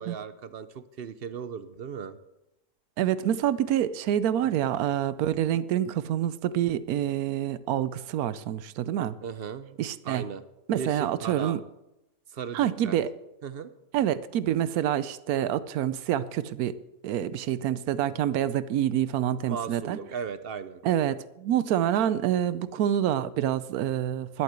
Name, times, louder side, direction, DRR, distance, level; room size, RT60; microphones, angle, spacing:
voice 1, 0.0-2.2 9.2-9.8 10.0-10.4 10.7-11.6 12.3-13.0 13.4-13.7 19.4-20.8, right 6 dB, 55° right, 13 dB, 0.7 m, -37 dB
voice 2, 3.0-9.1 9.8-10.2 10.7-11.6 12.5-13.1 13.9-16.8 17.0-20.0 20.8-24.4, right 11 dB, 90° right, 16 dB, 1.1 m, -27 dB
11.5 x 7.8 x 8.0 m, 0.89 s
omnidirectional pair, 1.5 m